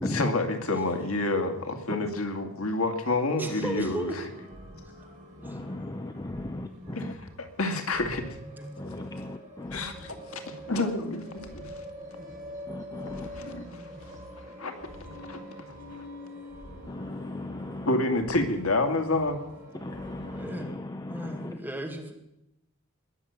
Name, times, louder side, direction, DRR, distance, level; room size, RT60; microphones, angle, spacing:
voice 1, 0.0-4.2 6.9-8.4 9.7-11.8 13.1-14.1 14.4-15.4 15.9-16.1 17.9-19.4, left 2 dB, 85° left, 5 dB, 2.4 m, -29 dB
voice 2, 3.4-4.2 5.4-5.6 8.6-8.7 20.3-20.8 21.1-22.1, right 1 dB, 10° right, 2 dB, 2.5 m, -35 dB
sound 1, 3.5-20.6, equal, 40° right, 5.2 m, -45 dB
voice 3, 5.4-7.1 8.8-9.8 12.7-13.3 16.9-17.9 19.7-21.6, left 1 dB, 20° left, 8 dB, 0.6 m, -37 dB
21.0 x 7.2 x 9.7 m, 0.87 s
head